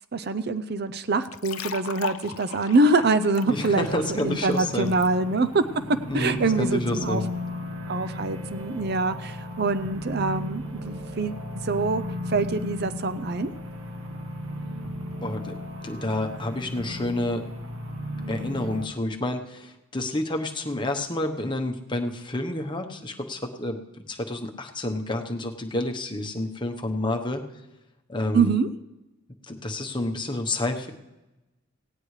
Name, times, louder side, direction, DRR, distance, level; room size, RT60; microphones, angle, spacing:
voice 1, 0.1-5.6 6.1-7.2 7.9-11.3 11.6-13.5 28.3-28.7, right 3 dB, 50° right, 11 dB, 0.5 m, -25 dB
sound 1, 1.2-5.1, left 8 dB, 80° left, 0.5 m, -38 dB
voice 2, 3.4-4.9 6.1-7.3 15.2-15.5 15.8-17.4 18.3-23.8 24.1-27.4 28.1-28.5 29.5-30.9, left 1 dB, 20° left, 4 dB, 1.0 m, -29 dB
sound 2, 3.5-18.9, left 1 dB, 80° right, 1.3 m, -35 dB
18.0 x 17.0 x 3.3 m, 1.0 s
head